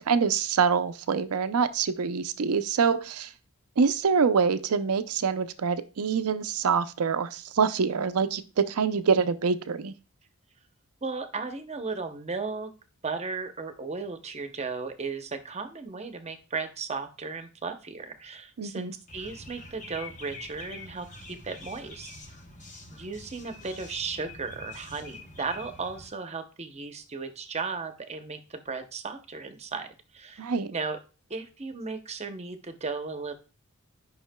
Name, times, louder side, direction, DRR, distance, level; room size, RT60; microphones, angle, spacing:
voice 1, 0.0-3.3 3.8-9.9 18.6-18.9 30.4-30.7, right 5 dB, 90° right, 11 dB, 0.5 m, -25 dB
voice 2, 11.0-12.7 13.0-22.1 22.9-29.9 30.1-31.0 31.3-33.3, right 4 dB, 30° right, 8 dB, 0.7 m, -35 dB
sound 1, 19.1-26.1, left 2 dB, 35° left, 1.1 m, -45 dB
10.0 x 5.6 x 2.2 m, 0.34 s
head